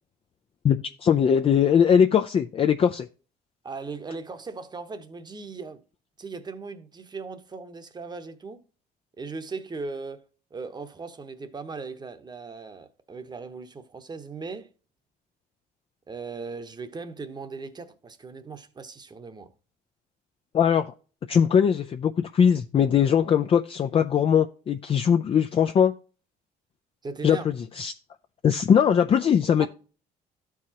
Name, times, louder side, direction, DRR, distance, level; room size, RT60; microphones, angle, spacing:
voice 1, 0.6-3.1 20.5-20.9 21.3-25.9 27.2-27.9 28.4-29.7, left 8 dB, 35° left, 0.4 m, -21 dB
voice 2, 3.6-5.8 6.2-8.6 9.2-14.7 16.1-19.5 27.0-27.5 29.6-29.7, right 4 dB, 25° right, 1.0 m, -38 dB
13.0 x 4.7 x 2.8 m
cardioid pair, 110°, 17 cm